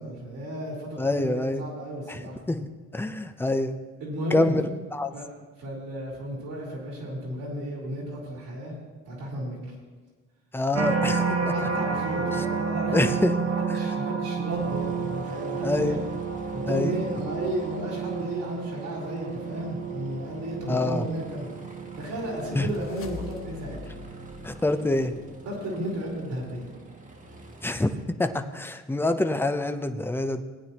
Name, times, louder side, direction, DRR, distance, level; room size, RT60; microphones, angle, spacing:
voice 1, 0.0-1.3 1.6-2.4 4.0-4.5 5.1-5.2 5.6-8.7 9.1-9.6 11.5-13.2 13.4-16.0 16.5-21.5 22.0-23.8 25.5-26.7, right 1 dB, 90° right, -4 dB, 4.1 m, -33 dB
voice 2, 1.0-1.6 2.1-2.2 2.5-3.8 4.3-4.6 4.9-5.1 10.5-11.5 12.3-12.4 12.9-13.3 13.7-13.8 15.6-16.0 16.7-17.0 20.7-21.1 22.5-22.7 24.4-25.2 27.6-30.4, left 2 dB, 5° left, 8 dB, 0.7 m, -26 dB
sound 1, 10.7-25.9 26.5-26.9, right 5 dB, 55° right, 0.9 m, -31 dB
Aircraft, 14.5-28.1, right 1 dB, 25° right, 1.3 m, -47 dB
sound 2, 21.7-25.7, left 5 dB, 45° left, 1.0 m, -45 dB
17.5 x 9.3 x 3.0 m, 1.4 s
cardioid pair, 90°, 30 cm